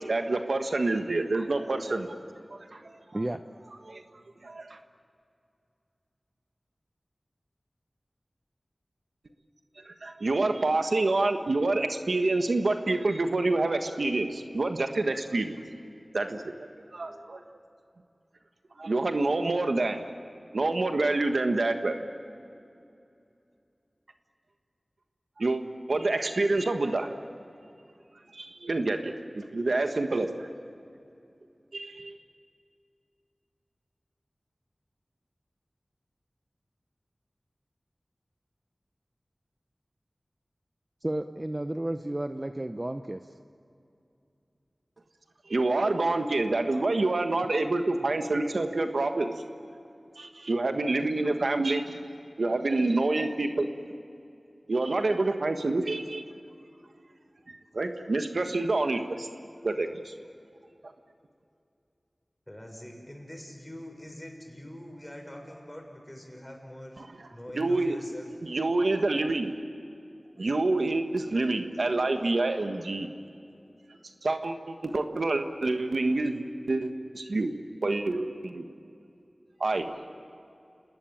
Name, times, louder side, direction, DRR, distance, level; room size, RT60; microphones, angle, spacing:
voice 1, 0.0-2.2 2.5-2.9 3.9-4.0 4.4-4.8 9.9-15.6 16.1-16.7 16.9-17.4 18.8-20.0 20.5-22.1 25.4-25.6 25.9-27.1 28.3-30.5 31.7-32.2 45.5-49.3 50.2-51.9 52.4-53.7 54.7-56.2 57.5-59.3 59.6-60.1 67.5-67.9 68.4-69.5 70.4-73.1 74.2-77.5 77.8-78.6 79.6-79.9, right 2 dB, 80° right, 6 dB, 1.5 m, -27 dB
voice 2, 41.0-43.3, right 1 dB, 30° right, 8 dB, 0.9 m, -32 dB
voice 3, 62.5-68.3, equal, 15° left, 2 dB, 6.5 m, -44 dB
28.0 x 19.5 x 8.9 m, 2.6 s
wide cardioid pair, 40°, 0 cm